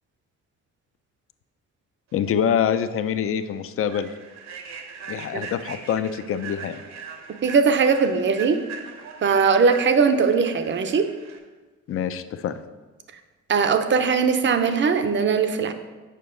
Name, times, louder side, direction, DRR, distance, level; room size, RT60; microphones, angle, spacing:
voice 1, 2.1-4.1 5.1-6.8 11.9-12.5, left 8 dB, 50° left, 12 dB, 0.4 m, -25 dB
Human voice / Train, 2.5-2.7 3.1-3.3 3.8-11.4, right 6 dB, 65° right, 0.9 m, -40 dB
voice 2, 7.3-8.6 9.2-11.1 13.5-15.7, right 5 dB, 40° right, 9 dB, 0.5 m, -20 dB
6.7 x 4.9 x 3.8 m, 1.3 s
cardioid pair, 90°, 30 cm